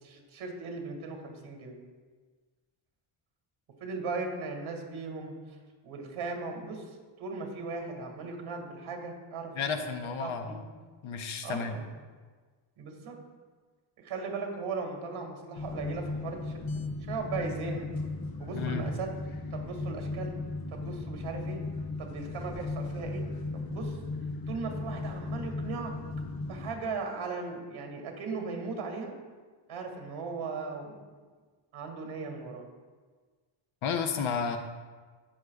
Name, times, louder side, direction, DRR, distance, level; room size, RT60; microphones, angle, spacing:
voice 1, 0.0-1.8 3.8-5.6 5.8-6.8 7.2-9.8 10.2-10.6 11.4-11.9 12.8-13.2 14.0-17.9 18.4-19.1 19.5-20.3 20.7-21.6 22.0-23.2 23.5-24.0 24.5-25.9 26.4-29.2 29.7-31.0 31.7-32.6, right 4 dB, 80° right, 2 dB, 2.2 m, -38 dB
voice 2, 9.5-10.6 11.0-11.7 18.5-18.9 33.8-34.6, left 6 dB, 80° left, 6 dB, 1.0 m, -32 dB
sound 1, 15.5-26.7, left 3 dB, 45° left, 0.9 m, -36 dB
17.5 x 6.5 x 2.4 m, 1.4 s
wide cardioid pair, 155°, 48 cm